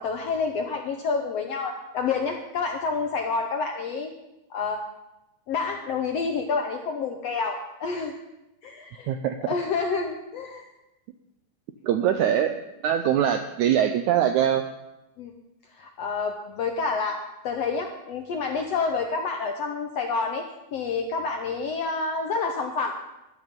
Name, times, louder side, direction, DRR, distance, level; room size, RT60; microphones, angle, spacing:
voice 1, 0.0-4.1 4.5-4.8 5.5-8.1 8.6-9.1 9.4-10.7 12.1-12.2 13.1-13.2 15.2-15.3 15.7-20.5 20.7-23.0, left 4 dB, 75° left, 3 dB, 1.5 m, -28 dB
voice 2, 11.8-12.6 12.8-14.6, right 10 dB, 90° right, 8 dB, 1.7 m, -22 dB
13.5 x 11.0 x 5.3 m, 0.93 s
omnidirectional pair, 4.0 m